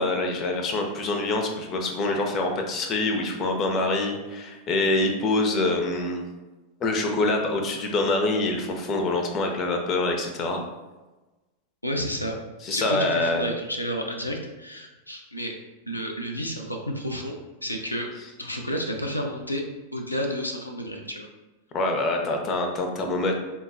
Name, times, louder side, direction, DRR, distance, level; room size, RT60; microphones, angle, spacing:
voice 1, 0.0-6.2 6.8-10.6 12.6-13.5 21.7-23.3, left 2 dB, 30° left, 3 dB, 0.6 m, -25 dB
voice 2, 11.8-12.3 12.7-15.5 15.9-18.1 18.4-19.6 19.9-21.3, equal, 85° left, 1 dB, 0.4 m, -31 dB
3.8 x 2.2 x 3.8 m, 1.1 s
figure-of-eight pair, 90°, 0 cm